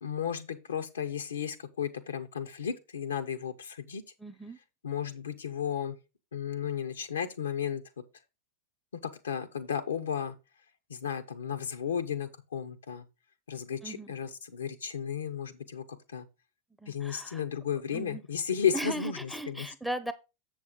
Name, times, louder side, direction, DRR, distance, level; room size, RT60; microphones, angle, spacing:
voice 1, 0.0-4.0 4.8-6.0 6.3-7.8 9.0-10.4 10.9-13.1 13.5-15.8 16.1-16.3 16.9-19.7, left 8 dB, 70° left, 0.9 m, -34 dB
voice 2, 4.2-4.6 13.8-14.1 16.8-17.4 17.9-18.2 18.7-20.1, right 1 dB, ahead, 0.8 m, -37 dB
7.5 x 6.4 x 3.8 m
figure-of-eight pair, 90°, 0 cm